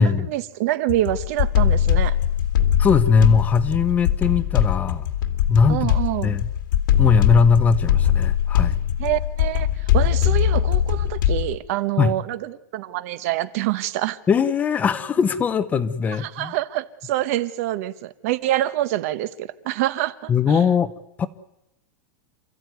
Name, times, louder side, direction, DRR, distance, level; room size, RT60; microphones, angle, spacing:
voice 1, 0.0-2.2 5.7-6.4 9.0-14.2 16.2-20.3, right 14 dB, 50° right, 1.2 m, -26 dB
sound 1, 0.9-11.6, left 10 dB, 85° left, 2.4 m, -21 dB
voice 2, 2.8-5.1 5.5-5.9 6.2-6.5 7.0-8.8 12.0-12.1 14.3-16.5 20.3-20.9 21.2-21.3, left 5 dB, 15° left, 0.8 m, -20 dB
28.5 x 14.5 x 9.4 m
supercardioid pair, 170°, 10 cm